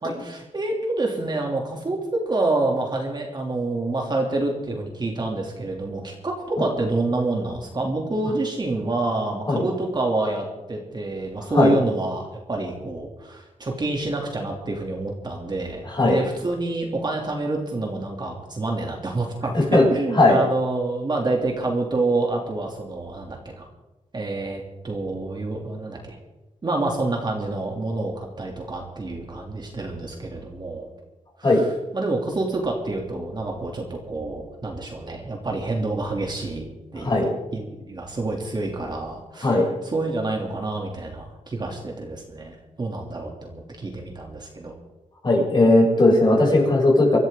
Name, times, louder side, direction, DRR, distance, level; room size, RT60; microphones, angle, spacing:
voice 1, 0.0-23.7 24.1-26.2 26.6-30.9 31.4-31.7 31.9-36.7 36.9-37.2 37.5-39.5 39.8-44.7, right 2 dB, 35° right, 0 dB, 3.0 m, -27 dB
voice 2, 19.5-19.9 20.2-20.4 31.4-31.6 37.0-37.3 39.4-39.7 45.2-47.2, left 2 dB, 35° left, -3 dB, 7.2 m, -17 dB
25.0 x 13.5 x 3.9 m, 1.0 s
wide cardioid pair, 110°, 13 cm